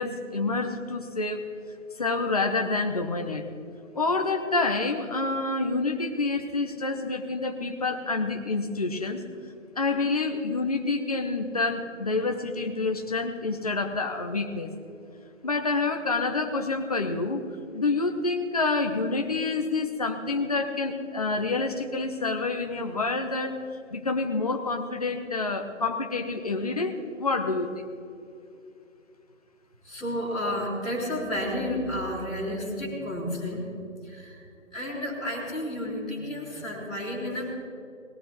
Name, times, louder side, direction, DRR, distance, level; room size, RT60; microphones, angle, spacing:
voice 1, 0.0-1.4 2.0-3.4 3.9-9.2 9.8-14.8 15.4-17.4 17.7-23.5 23.9-27.9, left 3 dB, 30° left, 5 dB, 1.0 m, -28 dB
voice 2, 29.8-33.7 34.0-34.4 34.7-37.6, left 1 dB, ahead, -15 dB, 1.1 m, -31 dB
20.5 x 17.5 x 3.2 m, 2.6 s
figure-of-eight pair, 165°, 39 cm